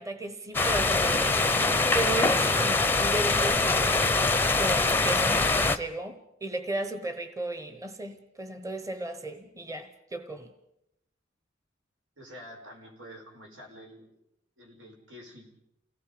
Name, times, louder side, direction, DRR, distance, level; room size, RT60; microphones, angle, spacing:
voice 1, 0.0-4.0 4.6-10.5, right 2 dB, 15° right, 9 dB, 1.1 m, -35 dB
sound 1, 0.5-5.8, left 3 dB, 10° left, 0.7 m, -24 dB
voice 2, 12.2-14.0 14.6-15.5, equal, 90° right, 1 dB, 4.9 m, -47 dB
29.0 x 18.0 x 5.1 m, 0.82 s
head